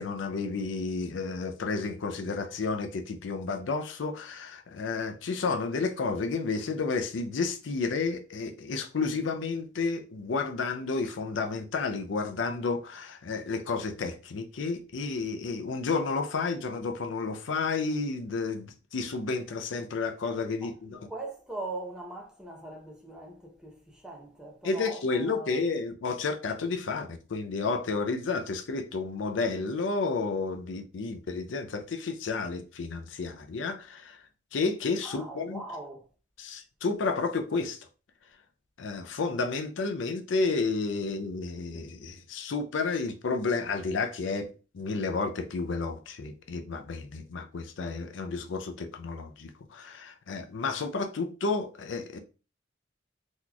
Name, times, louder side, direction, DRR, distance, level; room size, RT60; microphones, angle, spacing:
voice 1, 0.0-21.1 24.6-34.2 34.5-35.6 36.4-37.8 38.8-52.2, left 4 dB, 80° left, 0.5 m, -31 dB
voice 2, 20.6-25.6 35.0-36.0, right 2 dB, 5° right, 0.7 m, -41 dB
3.9 x 3.0 x 2.3 m
head